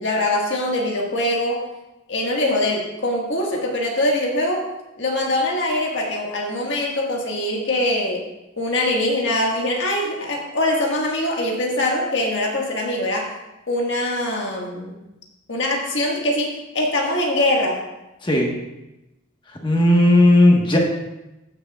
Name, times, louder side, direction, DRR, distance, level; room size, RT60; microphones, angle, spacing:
voice 1, 0.0-1.6 2.1-4.6 5.0-8.2 8.6-13.3 13.7-15.0 15.5-17.8, left 1 dB, 65° left, -1 dB, 1.7 m, -23 dB
voice 2, 19.6-20.8, left 1 dB, 25° left, 0 dB, 1.3 m, -15 dB
15.0 x 6.3 x 2.4 m, 0.97 s
head